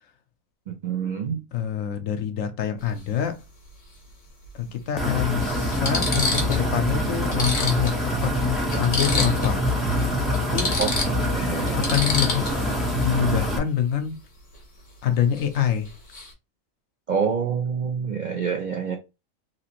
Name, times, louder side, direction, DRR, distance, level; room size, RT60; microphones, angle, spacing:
voice 1, 0.7-1.4 10.8-10.9 11.3-11.9 17.1-19.0, right 6 dB, 75° right, 0.4 m, -27 dB
voice 2, 1.5-3.4 4.5-9.7 10.0-10.7 11.9-14.2 15.0-15.9, left 9 dB, 75° left, 1.0 m, -26 dB
sound 1, 2.8-3.0 4.5-4.6 5.2-5.3 5.7-6.7 7.0-7.1 7.3-9.6 9.9-10.0 10.3-12.7 15.3-15.6 15.8-16.3, left 3 dB, 40° left, 1.0 m, -28 dB
sound 2, 5.0-13.6, equal, ahead, 0.4 m, -25 dB
3.0 x 2.5 x 2.8 m
omnidirectional pair, 1.4 m